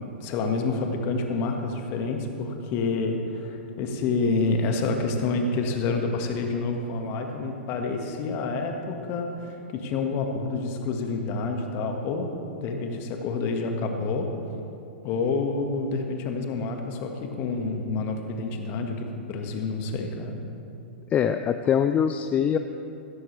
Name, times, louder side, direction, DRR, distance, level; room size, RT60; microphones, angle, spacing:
voice 1, 0.0-14.3 15.0-20.4, left 3 dB, 40° left, 3 dB, 1.6 m, -28 dB
voice 2, 21.1-22.6, left 8 dB, 25° left, 9 dB, 0.4 m, -23 dB
16.5 x 13.5 x 3.3 m, 2.7 s
hypercardioid pair, 110°, 6 cm